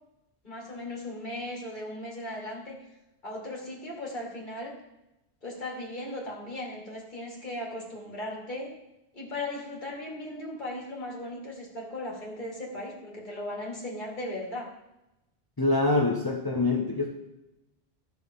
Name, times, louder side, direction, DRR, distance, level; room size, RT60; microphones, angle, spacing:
voice 1, 0.4-2.8 3.2-4.8 5.4-8.8 9.1-14.7, left 1 dB, 50° left, -2 dB, 2.3 m, -37 dB
voice 2, 15.6-17.1, left 2 dB, 25° left, 0 dB, 0.9 m, -25 dB
13.0 x 6.3 x 3.5 m, 0.92 s
omnidirectional pair, 1.1 m